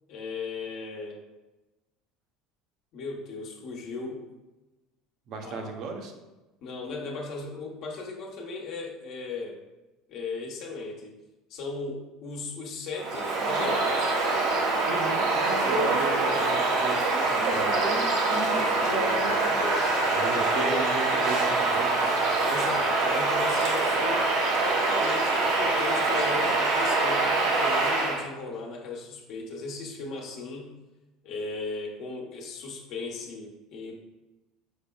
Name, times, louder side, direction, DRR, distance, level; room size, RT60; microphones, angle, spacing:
voice 1, 0.1-1.2 2.9-4.2 5.4-5.7 6.6-9.6 10.1-11.1 11.5-14.2 18.3-20.8 22.4-24.3 24.6-30.7 31.2-33.9, left 3 dB, 60° left, -1 dB, 1.0 m, -37 dB
voice 2, 5.3-6.1 14.9-17.8 20.1-22.1, right 4 dB, 60° right, 3 dB, 0.8 m, -35 dB
Bird vocalization bird call bird song, 13.0-28.2, right 3 dB, 75° right, 1.3 m, -25 dB
5.3 x 4.3 x 2.3 m, 1.1 s
supercardioid pair, 105°, 0 cm